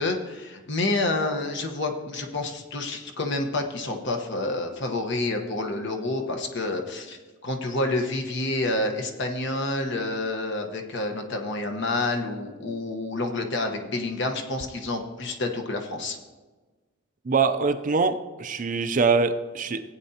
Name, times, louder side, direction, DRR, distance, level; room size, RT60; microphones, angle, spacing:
voice 1, 0.0-16.2, left 2 dB, 55° left, 4 dB, 1.1 m, -28 dB
voice 2, 17.2-19.8, right 4 dB, 40° right, 8 dB, 0.5 m, -23 dB
16.0 x 8.9 x 2.8 m, 1.3 s
head